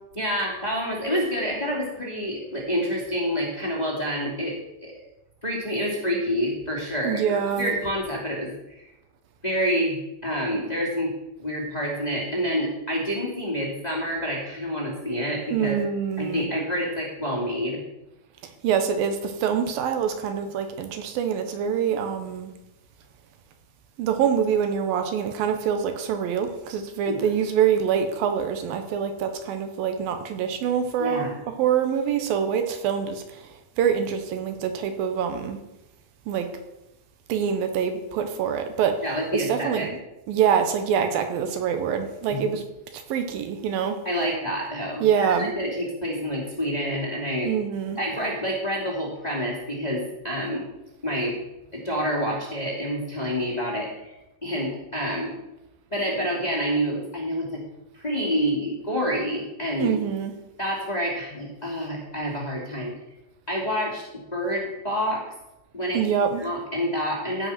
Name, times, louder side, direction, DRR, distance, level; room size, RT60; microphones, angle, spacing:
voice 1, 0.1-4.5 4.8-4.9 5.4-8.9 9.4-11.1 11.4-15.8 16.2-17.8 27.1-27.2 31.0-31.4 39.0-39.9 42.3-42.5 44.0-47.5 48.0-50.7 51.0-51.4 51.7-55.3 55.9-57.6 57.9-60.0 60.6-62.9 63.5-65.2 65.7-66.0 66.4-67.5, equal, 15° left, -3 dB, 2.3 m, -28 dB
voice 2, 7.0-7.7 15.5-16.4 18.6-22.5 24.0-31.3 31.6-33.5 33.8-35.6 36.3-36.5 37.3-39.0 39.3-39.9 40.3-42.6 43.1-44.0 45.0-45.5 47.4-48.0 59.8-60.3 65.9-66.5, right 8 dB, 80° right, 7 dB, 2.8 m, -25 dB
15.5 x 5.5 x 5.9 m, 0.94 s
omnidirectional pair, 4.2 m